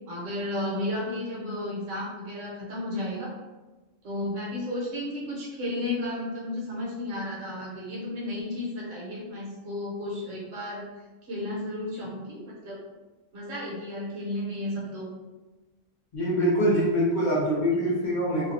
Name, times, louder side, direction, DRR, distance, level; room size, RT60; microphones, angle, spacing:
voice 1, 0.1-3.3 4.0-10.9 11.3-12.8 13.3-15.1, left 1 dB, 70° right, -5 dB, 1.1 m, -33 dB
voice 2, 16.1-18.5, equal, 55° left, -5 dB, 0.5 m, -24 dB
2.5 x 2.3 x 2.6 m, 1.2 s
omnidirectional pair, 1.4 m